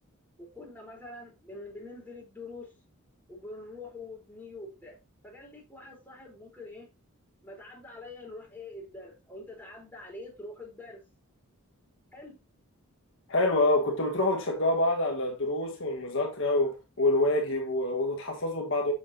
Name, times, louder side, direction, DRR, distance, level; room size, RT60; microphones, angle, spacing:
voice 1, 0.4-2.7 3.3-5.0 5.2-6.9 7.4-11.0 12.1-12.4, left 2 dB, 10° left, 3.8 m, -45 dB
voice 2, 13.3-18.9, left 2 dB, 60° left, 1.5 m, -26 dB
7.6 x 7.4 x 2.8 m
head